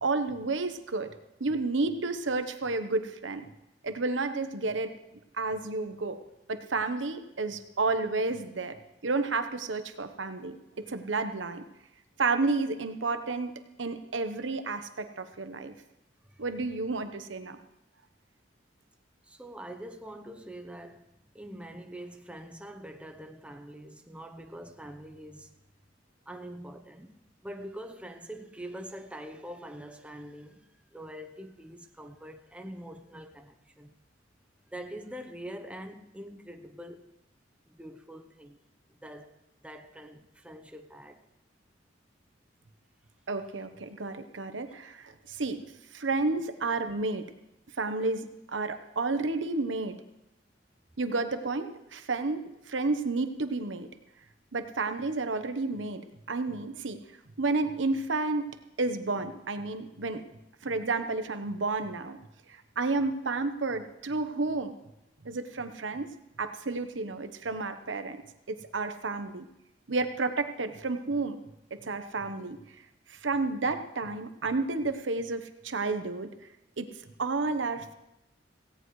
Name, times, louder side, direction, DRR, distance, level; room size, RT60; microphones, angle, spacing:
voice 1, 0.0-1.1 1.4-3.5 3.8-4.9 5.4-6.2 6.5-8.8 9.0-11.6 12.2-13.5 13.8-15.7 16.4-17.6 43.3-45.6 45.9-47.3 47.8-50.0 51.0-53.9 54.5-57.0 57.4-60.2 60.6-62.2 62.5-64.7 65.2-66.1 66.4-68.2 68.5-69.4 69.9-71.4 71.8-72.6 73.1-76.3 76.8-76.9 77.2-77.9, right 3 dB, 85° right, 1.0 m, -31 dB
voice 2, 19.2-25.5 26.3-33.9 34.7-37.1 37.7-38.6 39.0-41.3 45.2-45.4 52.5-52.6, right 1 dB, 5° right, 0.8 m, -44 dB
17.0 x 17.0 x 3.2 m
head